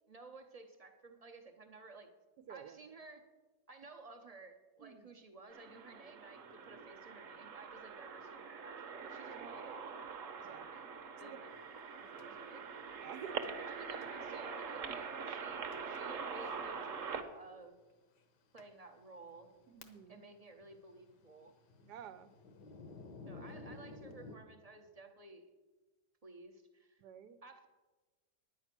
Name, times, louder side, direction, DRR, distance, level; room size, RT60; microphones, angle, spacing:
voice 1, 0.1-2.1 2.5-3.2 3.7-9.8 10.4-10.9 11.2-11.5 12.2-12.9 13.3-17.8 18.5-19.5 20.1-21.5 23.3-25.5 26.2-27.0 27.4-27.7, right 3 dB, 35° right, 5 dB, 0.6 m, -55 dB
voice 2, 2.5-2.8 4.8-5.1 10.4-10.7 11.2-11.4 12.1-12.4 13.0-13.4 19.7-20.2 21.8-22.3 27.0-27.4, right 9 dB, 75° right, 14 dB, 1.2 m, -50 dB
sound 1, 5.5-17.2, right 5 dB, 55° right, 1.2 m, -44 dB
Thunder, 12.2-12.3 13.4-13.7 14.0-14.1 14.8-14.9 15.7-16.0 16.4-16.6 17.5-17.6 18.2-18.3 18.6-18.7 19.3-20.3 20.5-24.4, left 3 dB, 75° left, 1.6 m, -53 dB
10.0 x 9.8 x 5.9 m, 1.2 s
omnidirectional pair, 1.9 m